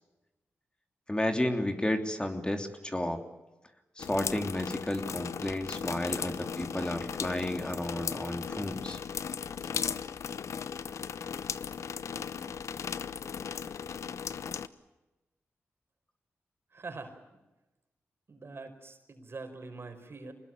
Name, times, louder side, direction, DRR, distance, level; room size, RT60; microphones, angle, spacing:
voice 1, 1.1-3.2 4.0-9.0, left 1 dB, 20° left, 5 dB, 3.2 m, -32 dB
sound 1, 4.0-14.7, left 7 dB, 75° left, 0.9 m, -37 dB
voice 2, 16.7-17.1 18.3-20.3, right 3 dB, 50° right, 7 dB, 5.1 m, -44 dB
25.0 x 20.5 x 9.1 m, 1.0 s
cardioid pair, 55°, 5 cm